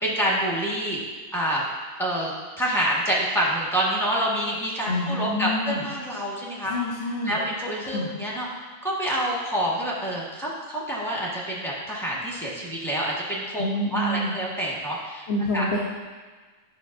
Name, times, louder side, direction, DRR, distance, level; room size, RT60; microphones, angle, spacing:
voice 1, 0.0-1.0 1.3-1.6 2.0-6.7 7.2-8.5 8.8-13.6 13.9-15.3 15.5-15.7, right 1 dB, ahead, -6 dB, 1.4 m, -27 dB
voice 2, 4.9-5.8 6.6-7.4 7.9-8.1 13.6-14.3 15.3-15.8, left 1 dB, 60° left, -4 dB, 1.1 m, -27 dB
10.0 x 5.8 x 2.6 m, 1.4 s
omnidirectional pair, 1.3 m